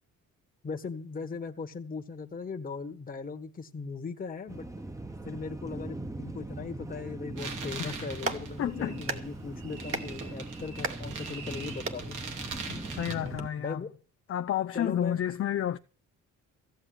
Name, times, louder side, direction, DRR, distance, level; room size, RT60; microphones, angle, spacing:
voice 1, 0.6-4.7 5.2-12.2 13.6-13.9 14.7-15.2, left 4 dB, 30° left, 1.5 m, -38 dB
sound 1, 4.5-13.5, right 1 dB, 10° right, 1.1 m, -40 dB
sound 2, 7.4-13.2, right 5 dB, 90° right, 2.7 m, -42 dB
Clapping, 8.1-13.4, right 3 dB, 45° right, 2.0 m, -40 dB
voice 2, 8.6-9.0 12.7-13.8 14.3-15.8, left 11 dB, 50° left, 0.6 m, -31 dB
15.5 x 7.7 x 7.7 m
cardioid pair, 90°, 30 cm